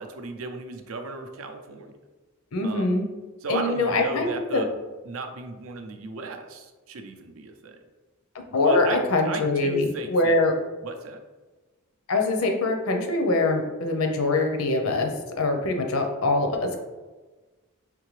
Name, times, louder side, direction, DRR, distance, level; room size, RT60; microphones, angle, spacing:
voice 1, 0.0-1.9 2.6-2.9 3.4-4.7 5.0-7.8 8.5-10.4 10.8-11.2, right 4 dB, 70° right, 6 dB, 0.5 m, -35 dB
voice 2, 2.5-3.0 3.5-4.7 8.5-10.5 12.1-16.8, left 2 dB, 85° left, 4 dB, 0.6 m, -23 dB
3.7 x 3.3 x 3.1 m, 1.2 s
head